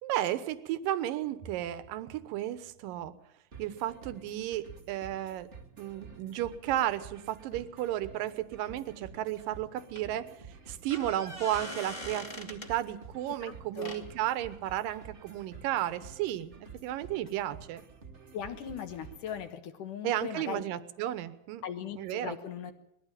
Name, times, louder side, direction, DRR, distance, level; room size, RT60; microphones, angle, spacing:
voice 1, 0.0-3.1 3.6-5.5 5.8-10.3 10.7-17.8 20.0-21.6 22.0-22.4, right 13 dB, 70° right, 13 dB, 2.6 m, -33 dB
sound 1, 3.5-19.5, right 5 dB, 30° right, 1.5 m, -51 dB
sound 2, 9.3-9.5 10.0-10.1 10.7-12.7 13.7-14.0 17.3-17.4 17.6-17.7, left 1 dB, 15° left, 2.0 m, -42 dB
voice 2, 13.4-13.9 18.3-20.6 21.6-22.7, left 8 dB, 65° left, 8 dB, 2.7 m, -39 dB
21.0 x 15.0 x 9.0 m, 0.81 s
omnidirectional pair, 4.3 m